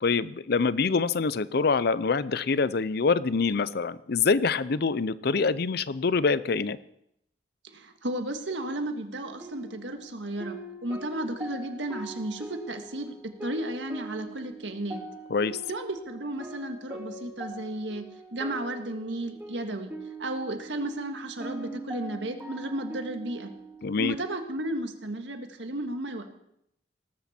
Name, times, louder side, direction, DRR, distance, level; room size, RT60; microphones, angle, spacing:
voice 1, 0.0-6.8 15.3-15.6 23.8-24.1, left 4 dB, 60° left, 17 dB, 0.6 m, -25 dB
voice 2, 7.7-15.0 15.7-18.0 18.3-19.9 20.2-23.5 24.0-26.2, right 1 dB, 90° right, 6 dB, 1.7 m, -34 dB
sound 1, 9.2-23.8, right 2 dB, 10° right, 2.1 m, -42 dB
19.0 x 13.0 x 4.4 m, 0.77 s
head